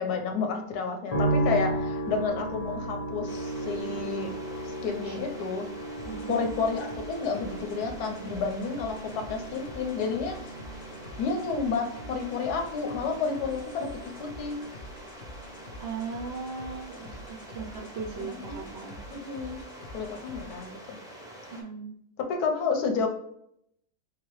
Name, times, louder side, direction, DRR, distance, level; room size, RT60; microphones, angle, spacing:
voice 1, 0.0-4.3 4.6-5.7 6.3-10.5 11.2-14.6 18.2-19.6 19.9-21.0 22.2-23.1, left 5 dB, 90° left, 4 dB, 1.3 m, -31 dB
sound 1, 1.1-16.4 16.6-17.5, right 2 dB, 40° left, 0.6 m, -35 dB
sound 2, 3.3-21.6, right 1 dB, 5° right, 0.4 m, -46 dB
sound 3, 6.0-20.7, left 1 dB, 60° left, 0.9 m, -47 dB
voice 2, 6.0-6.3 15.8-19.0 21.5-21.9, right 5 dB, 65° right, 0 dB, 0.6 m, -38 dB
3.6 x 2.9 x 3.1 m, 0.71 s
omnidirectional pair, 1.6 m